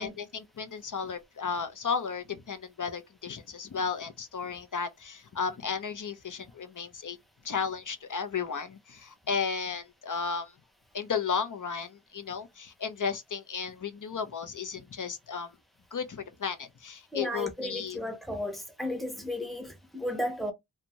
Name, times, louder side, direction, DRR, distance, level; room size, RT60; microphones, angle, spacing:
voice 1, 0.0-7.2 7.4-10.5 10.9-15.5 15.9-18.0, left 6 dB, 65° left, 0.6 m, -34 dB
voice 2, 17.1-20.5, left 1 dB, ahead, 0.7 m, -34 dB
2.6 x 2.2 x 2.9 m
wide cardioid pair, 55°, 33 cm